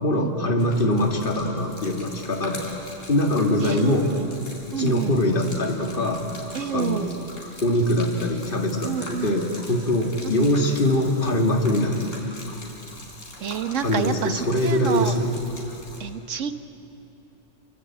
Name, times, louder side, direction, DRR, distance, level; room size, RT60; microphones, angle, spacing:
voice 1, 0.0-2.7 3.1-4.1 4.8-6.2 6.7-7.2 7.6-12.1 13.8-15.3, left 1 dB, 45° left, 2 dB, 2.3 m, -23 dB
Gurgling / Liquid, 0.6-16.0, left 1 dB, 90° left, 4.7 m, -42 dB
voice 2, 3.6-4.3 4.7-5.1 6.5-7.1 8.8-9.3 10.2-10.5 13.4-15.2 16.0-16.5, right 8 dB, 85° right, 10 dB, 1.4 m, -29 dB
28.0 x 23.0 x 8.7 m, 2.9 s
omnidirectional pair, 1.3 m